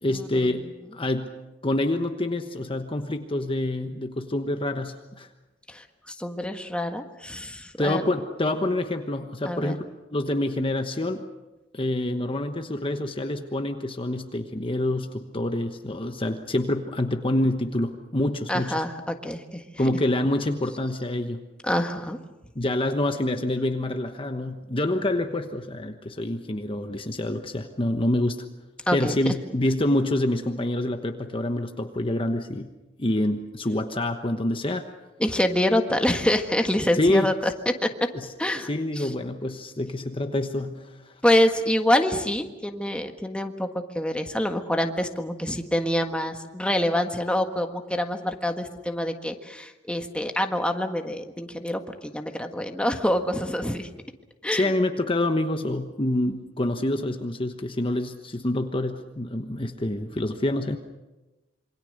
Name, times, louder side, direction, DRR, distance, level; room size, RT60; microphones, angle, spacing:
voice 1, 0.0-0.7 0.9-1.3 1.6-5.3 7.8-9.8 10.1-11.2 11.7-18.8 19.8-21.4 22.5-28.4 28.9-32.7 33.0-34.9 37.0-37.3 38.1-38.3 38.6-40.9 54.5-60.8, left 1 dB, 30° left, 6 dB, 1.2 m, -27 dB
voice 2, 5.7-8.0 9.4-9.8 18.5-19.6 21.6-22.2 28.9-29.3 35.2-38.1 38.4-38.7 38.9-39.1 41.2-53.9 54.4-54.7, left 1 dB, 5° left, 5 dB, 1.5 m, -26 dB
27.0 x 24.0 x 6.6 m, 1.1 s
head